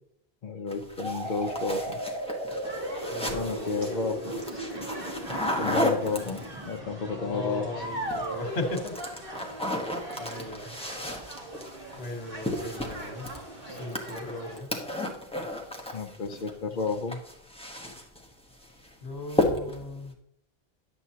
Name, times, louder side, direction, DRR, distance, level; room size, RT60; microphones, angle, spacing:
voice 1, 0.4-2.0 3.3-4.6 5.6-7.7 15.9-17.2, left 4 dB, 50° left, 4 dB, 0.8 m, -32 dB
sound 1, 0.7-6.7 7.9-8.3 8.6-16.5 16.8-18.3 18.6-18.9 19.3-19.9, left 1 dB, 5° left, 1.0 m, -33 dB
sound 2, 1.0-8.7, right 1 dB, 25° right, 1.6 m, -37 dB
sound 3, 2.6-14.6, right 1 dB, 60° right, 1.8 m, -41 dB
voice 2, 3.1-4.0 7.1-9.6 10.2-10.7 12.0-13.3 13.6-14.7 19.0-20.1, left 2 dB, 80° left, 3 dB, 1.6 m, -37 dB
10.5 x 7.7 x 2.8 m, 0.73 s
omnidirectional pair, 1.0 m